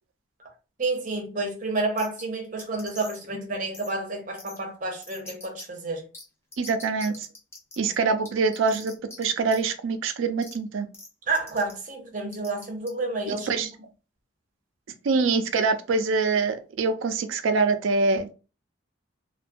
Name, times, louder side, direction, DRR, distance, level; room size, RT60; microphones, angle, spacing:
voice 1, 0.8-6.1 11.3-13.5, right 3 dB, 40° right, 0.6 m, -30 dB
sound 1, 2.0-2.2 2.6-3.2 3.7-3.9 4.4-4.6 5.0-5.6 6.1-6.2 6.5-7.8 8.2-9.2 9.5-9.6 10.4-10.5 10.9-11.1 11.3-11.7 12.3-12.9, left 2 dB, 15° left, 0.4 m, -43 dB
voice 2, 6.6-7.3 7.8-10.9 13.3-13.7 15.0-18.3, right 4 dB, 85° right, 0.4 m, -24 dB
2.3 x 2.2 x 2.5 m
head